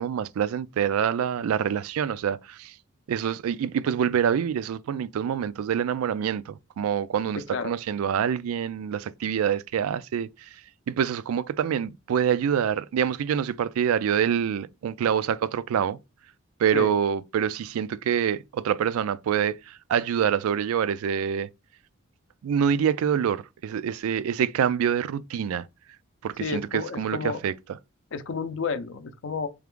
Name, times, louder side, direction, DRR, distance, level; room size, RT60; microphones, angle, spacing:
voice 1, 0.0-2.7 3.1-10.5 10.9-16.0 16.6-21.5 22.4-25.7 26.2-27.5, right 8 dB, 90° right, 0.3 m, -26 dB
voice 2, 26.4-27.4 28.1-29.5, left 4 dB, 60° left, 0.5 m, -31 dB
3.5 x 3.3 x 3.6 m
head